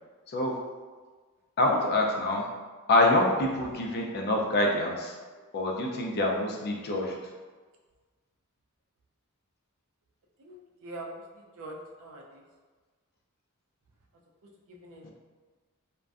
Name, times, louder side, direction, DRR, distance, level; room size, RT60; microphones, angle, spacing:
voice 1, 0.3-0.6 1.6-2.5 2.9-5.2 5.5-7.3 15.0-15.1, left 2 dB, 45° left, -1 dB, 0.4 m, -26 dB
voice 2, 10.4-11.2 11.6-12.4 14.8-15.1, right 2 dB, 65° right, -1 dB, 0.4 m, -43 dB
2.5 x 2.1 x 2.3 m, 1.4 s
head